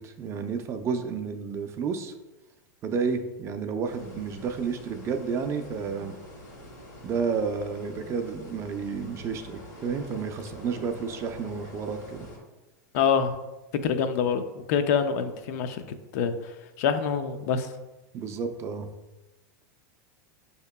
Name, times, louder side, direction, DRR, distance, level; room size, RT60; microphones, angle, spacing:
voice 1, 0.0-2.1 2.8-6.1 7.0-12.3 18.1-18.9, right 5 dB, 30° right, 6 dB, 0.4 m, -31 dB
sound 1, 3.8-12.4, left 1 dB, 85° left, 1.5 m, -46 dB
voice 2, 12.9-13.4 13.8-15.8 16.1-16.4 16.8-17.7, left 7 dB, 60° left, 9 dB, 0.4 m, -25 dB
6.3 x 2.8 x 2.2 m, 1.1 s
supercardioid pair, 130°, 10 cm